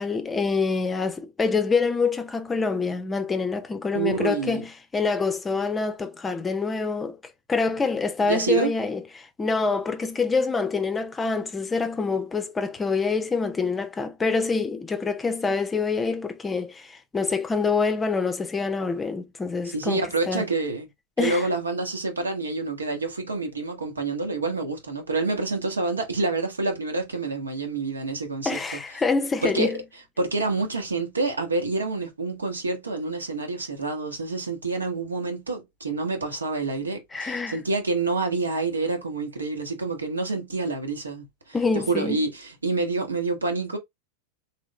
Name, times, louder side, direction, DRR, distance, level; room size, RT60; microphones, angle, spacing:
voice 1, 0.0-7.2 7.5-20.4 21.2-21.5 28.4-29.8 37.1-37.6 41.5-42.2, left 4 dB, 15° left, 0.6 m, -26 dB
voice 2, 3.9-4.6 8.2-8.7 19.7-20.9 21.2-28.6 29.4-29.7 30.2-43.8, right 3 dB, 75° right, 1.2 m, -27 dB
3.6 x 3.3 x 3.1 m
figure-of-eight pair, 90°, 0 cm